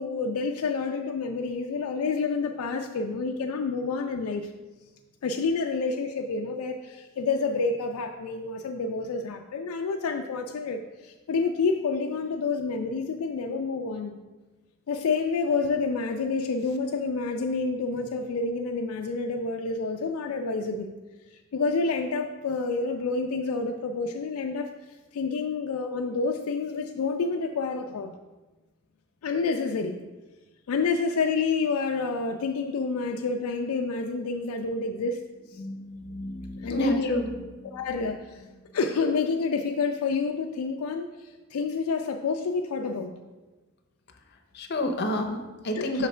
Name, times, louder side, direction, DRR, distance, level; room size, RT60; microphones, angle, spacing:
voice 1, 0.0-4.5 5.2-14.1 14.9-20.9 21.5-24.7 25.1-28.1 29.2-30.0 30.7-35.2 35.5-35.6 36.6-37.2 37.7-38.4 38.7-43.1 45.7-46.1, left 4 dB, 85° left, 3 dB, 0.4 m, -28 dB
voice 2, 35.6-37.3 37.6-37.8 44.5-46.1, left 1 dB, 50° left, 5 dB, 0.7 m, -29 dB
5.8 x 3.2 x 5.5 m, 1.2 s
head